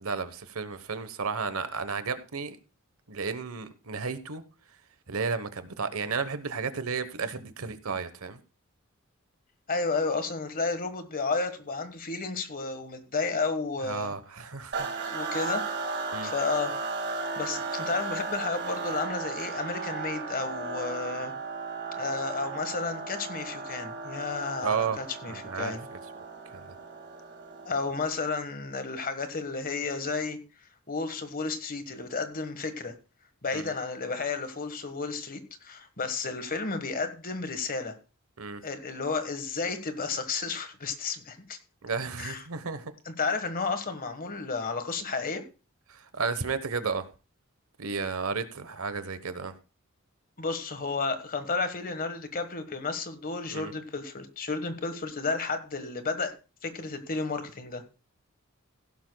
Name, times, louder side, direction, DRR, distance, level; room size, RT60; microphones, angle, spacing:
voice 1, 0.0-2.6 3.1-4.4 5.1-8.4 13.8-14.9 16.1-16.3 24.6-25.0 25.3-26.2 26.5-26.8 33.5-33.7 38.4-38.6 41.8-42.9 45.9-47.1 47.8-49.5 53.5-53.7, right 5 dB, 75° right, 12 dB, 1.1 m, -33 dB
voice 2, 9.7-14.1 15.0-15.6 16.2-16.8 17.4-21.3 22.0-25.9 27.6-30.4 30.9-32.9 33.4-37.9 38.6-41.6 42.2-42.4 43.0-45.4 50.4-56.3 56.6-57.8, left 4 dB, 40° left, 9 dB, 1.5 m, -32 dB
sound 1, 14.7-28.1, right 4 dB, 55° right, 2.0 m, -35 dB
16.0 x 11.5 x 2.3 m, 0.32 s
head